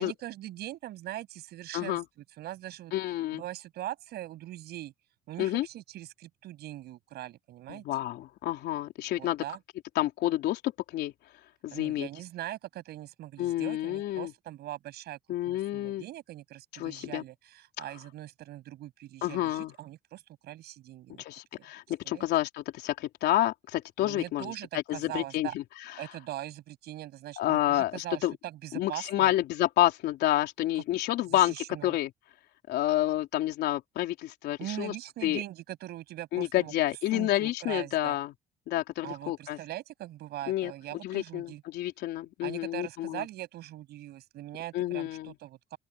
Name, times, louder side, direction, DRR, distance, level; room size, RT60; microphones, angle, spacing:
voice 1, 0.0-2.0 2.4-2.9 3.3-4.9 5.3-7.8 9.2-9.6 11.7-15.2 15.5-21.2 22.0-22.3 24.0-25.5 26.0-29.3 31.3-32.0 34.6-36.7 37.1-38.2 39.0-41.6 42.4-45.8, right 14 dB, 75° right, 7.1 m, -41 dB
voice 2, 1.7-2.0 2.9-3.4 5.4-5.7 7.7-9.4 10.0-11.1 11.6-12.1 13.4-14.3 15.3-16.0 16.8-17.2 17.8-17.9 19.2-19.7 21.2-24.5 24.9-26.0 27.4-28.3 28.7-32.1 32.7-34.9 35.2-35.4 36.3-38.3 38.7-39.6 40.5-40.7 41.0-43.3 44.7-45.3, left 14 dB, 80° left, 3.8 m, -29 dB
open air
cardioid pair, 110°, 17 cm